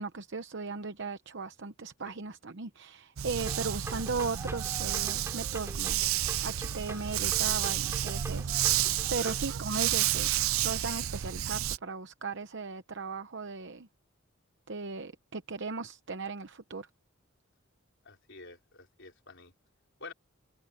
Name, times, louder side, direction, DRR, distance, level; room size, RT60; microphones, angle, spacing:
voice 1, 0.0-6.0 6.4-10.3 10.6-13.9 14.7-16.9, right 4 dB, 60° right, 0.9 m, -37 dB
Dog, 3.2-11.8, right 12 dB, 80° right, 0.6 m, -30 dB
sound 1, 3.5-9.4, right 1 dB, 15° right, 4.8 m, -45 dB
voice 2, 18.0-19.5 20.0-20.1, left 4 dB, 60° left, 4.7 m, -48 dB
head